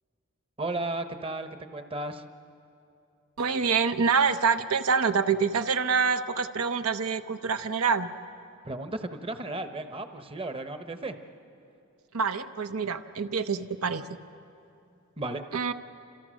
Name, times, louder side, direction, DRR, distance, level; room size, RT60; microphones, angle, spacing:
voice 1, 0.6-2.2 8.6-11.2 15.2-15.4, right 2 dB, 25° right, 8 dB, 0.9 m, -34 dB
voice 2, 3.4-8.1 12.1-14.1 15.5-15.7, right 5 dB, 80° right, 9 dB, 0.8 m, -26 dB
29.0 x 27.5 x 6.3 m, 2.7 s
head